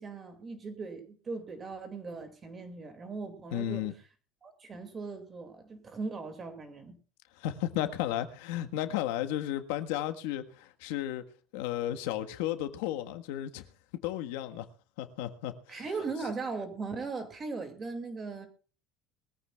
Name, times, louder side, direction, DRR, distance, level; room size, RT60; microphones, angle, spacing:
voice 1, 0.0-3.8 4.4-7.0 15.7-18.5, right 4 dB, 20° right, 2.4 m, -39 dB
voice 2, 3.5-3.9 7.4-11.2 11.5-13.6 14.0-14.7 15.0-15.8, left 12 dB, 85° left, 1.5 m, -33 dB
22.0 x 14.5 x 2.4 m
cardioid pair, 180°, 0 cm